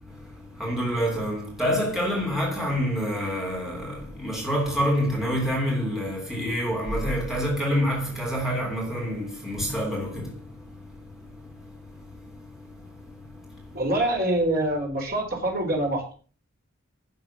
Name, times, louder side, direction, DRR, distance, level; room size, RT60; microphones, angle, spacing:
voice 1, 0.0-13.8, equal, ahead, 3.1 m, -28 dB
voice 2, 13.7-16.1, right 1 dB, 40° right, 3.9 m, -25 dB
11.0 x 7.2 x 5.9 m
head